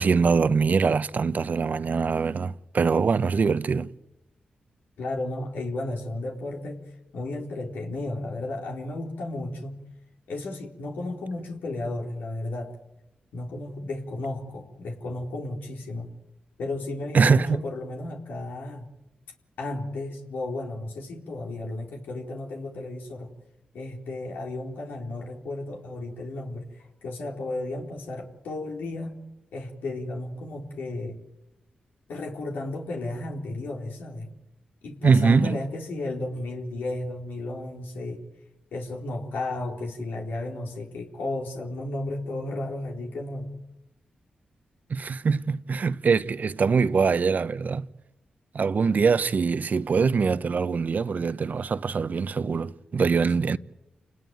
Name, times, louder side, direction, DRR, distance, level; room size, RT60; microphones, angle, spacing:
voice 1, 0.0-3.9 17.1-17.6 35.0-35.6 44.9-47.9 48.5-53.6, right 5 dB, 60° right, 0.9 m, -23 dB
voice 2, 5.0-9.8 10.3-12.8 13.3-16.1 16.6-18.9 19.6-23.3 23.7-29.2 29.5-31.2 32.1-34.3 34.8-38.2 38.7-43.6, left 2 dB, 80° left, 4.1 m, -33 dB
28.5 x 19.5 x 9.4 m
supercardioid pair, 45°, 3 cm